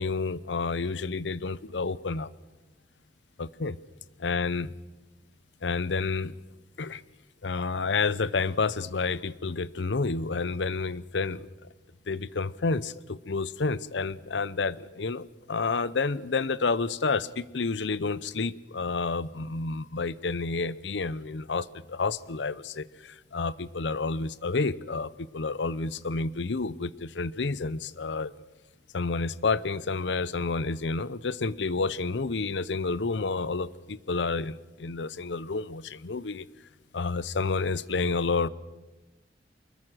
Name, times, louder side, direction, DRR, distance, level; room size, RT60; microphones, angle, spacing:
voice 1, 0.0-2.3 3.4-3.8 4.2-4.7 5.6-6.3 6.8-7.0 7.4-11.5 12.1-28.3 28.9-36.5 36.9-38.5, left 4 dB, 90° left, 19 dB, 0.7 m, -30 dB
24.5 x 21.5 x 6.2 m, 1.1 s
head